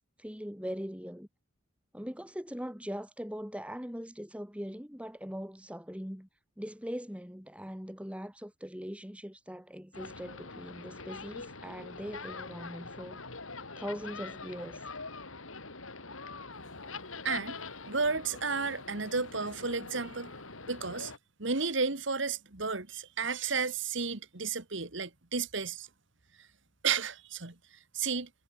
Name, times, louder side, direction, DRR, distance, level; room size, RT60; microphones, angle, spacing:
voice 1, 0.2-1.3 1.9-6.3 6.6-13.2 13.8-14.8, equal, 5° right, 2.0 m, -41 dB
sound 1, 9.9-21.2, left 3 dB, 80° left, 5.0 m, -44 dB
voice 2, 17.2-17.6 17.9-20.3 20.7-21.1 21.4-25.9 26.8-27.6 27.9-28.3, right 5 dB, 65° right, 2.0 m, -32 dB
head